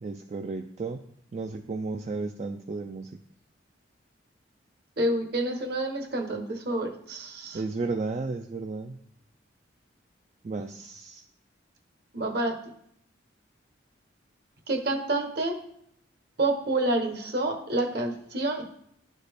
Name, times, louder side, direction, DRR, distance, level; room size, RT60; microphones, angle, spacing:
voice 1, 0.0-1.0 1.3-3.1 7.5-9.0 10.4-11.2, right 3 dB, 35° right, 5 dB, 0.3 m, -33 dB
voice 2, 5.0-7.6 12.1-12.5 14.7-15.6 16.4-18.6, right 2 dB, 55° right, 4 dB, 1.1 m, -28 dB
12.0 x 4.1 x 3.4 m, 0.70 s
head